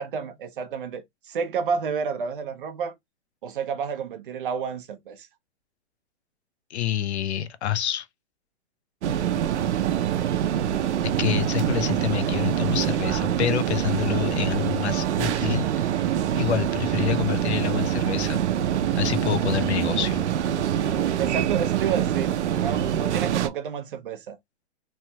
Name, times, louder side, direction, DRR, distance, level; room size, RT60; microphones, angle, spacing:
voice 1, 0.0-2.9 3.4-5.3 21.2-24.4, right 6 dB, 50° right, 0.8 m, -30 dB
voice 2, 6.7-8.1 11.2-15.8 16.4-18.4 19.0-20.2, left 10 dB, 75° left, 0.7 m, -27 dB
sound 1, 9.0-23.5, right 10 dB, 85° right, 0.6 m, -25 dB
3.3 x 2.2 x 2.8 m
hypercardioid pair, 175°, 34 cm